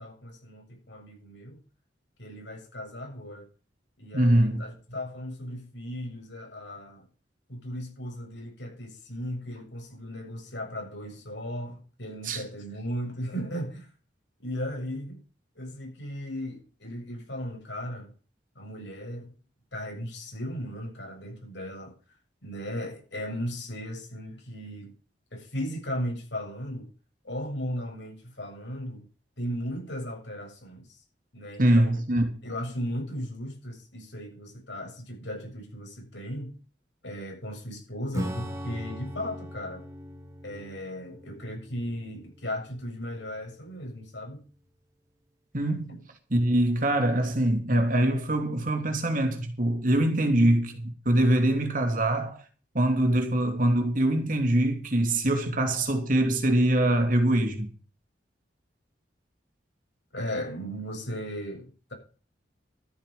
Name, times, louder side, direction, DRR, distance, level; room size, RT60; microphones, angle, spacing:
voice 1, 0.0-1.6 2.2-3.5 4.0-7.0 7.5-13.9 14.4-15.2 15.5-18.1 18.5-19.3 19.7-21.9 22.4-24.9 25.3-26.9 27.2-29.1 29.4-31.0 31.3-32.0 32.4-36.5 37.0-39.8 40.4-44.4 45.9-46.0 60.1-61.9, equal, 75° left, 7.6 m, -36 dB
voice 2, 4.1-4.6 12.2-12.4 31.6-32.3 45.5-46.0 46.3-52.4 52.7-57.7, right 1 dB, 45° right, 2.9 m, -23 dB
Acoustic guitar / Strum, 38.1-44.1, equal, 20° right, 2.9 m, -40 dB
13.0 x 8.9 x 6.9 m
head